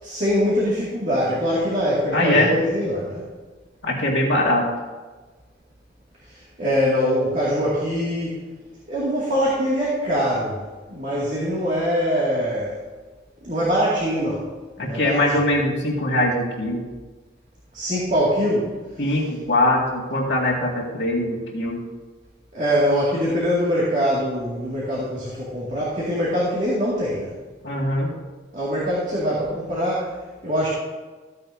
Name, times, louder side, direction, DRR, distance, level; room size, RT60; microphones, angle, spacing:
voice 1, 0.0-3.2 6.3-8.4 8.9-10.6 10.9-12.8 13.4-14.5 14.8-15.2 17.7-18.8 19.0-19.1 22.5-27.3 28.5-30.7, equal, 40° right, -7 dB, 2.3 m, -23 dB
voice 2, 2.1-2.5 3.8-4.7 14.8-16.8 19.0-21.8 27.6-28.1, left 1 dB, 70° left, -3 dB, 2.2 m, -22 dB
14.5 x 9.7 x 2.8 m, 1.3 s
head